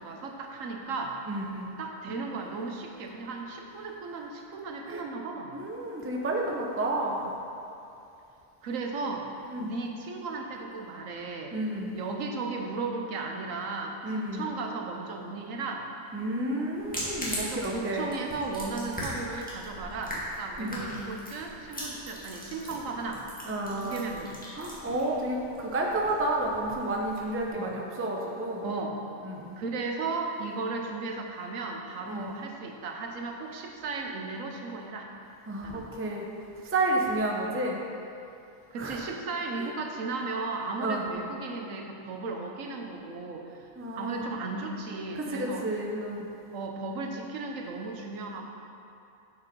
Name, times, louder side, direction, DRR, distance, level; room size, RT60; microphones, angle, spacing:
voice 1, 0.0-1.2 1.8-5.6 8.6-9.3 9.6-11.6 11.9-15.9 17.4-23.2 23.7-24.3 27.5-27.7 28.6-29.0 29.6-35.1 35.6-36.0 37.5-37.6 38.7-43.7 44.0-45.7 46.5-48.4, right 3 dB, 75° right, 2 dB, 1.2 m, -35 dB
voice 2, 1.3-1.7 4.9-5.0 5.5-7.3 9.5-9.7 11.5-12.0 14.0-14.4 16.1-18.1 20.6-21.0 21.9-22.0 23.5-24.0 24.6-28.7 29.2-29.5 32.0-32.3 35.5-36.3 36.6-37.8 38.8-39.1 39.6-39.7 40.8-41.0 43.8-44.3 45.1-46.3, right 1 dB, 15° right, 0 dB, 0.5 m, -31 dB
sound 1, 16.8-27.5, equal, 5° left, 1.6 m, -40 dB
8.2 x 5.3 x 5.3 m, 2.7 s
omnidirectional pair, 1.4 m